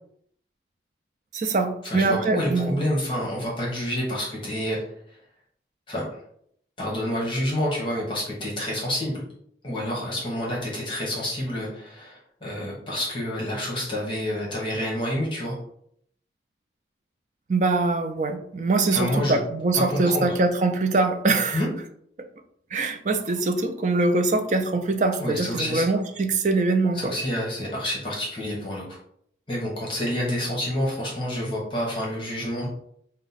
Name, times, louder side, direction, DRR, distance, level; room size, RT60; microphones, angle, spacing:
voice 1, 1.3-2.8 17.5-21.6 22.7-27.1, right 3 dB, 45° right, 7 dB, 0.4 m, -23 dB
voice 2, 1.8-4.9 5.9-6.2 6.8-9.2 9.6-15.5 18.9-19.4 19.7-20.3 21.5-21.7 25.2-25.9 26.9-28.8 29.5-32.7, left 1 dB, 30° left, -4 dB, 1.0 m, -28 dB
4.6 x 2.1 x 4.1 m, 0.67 s
head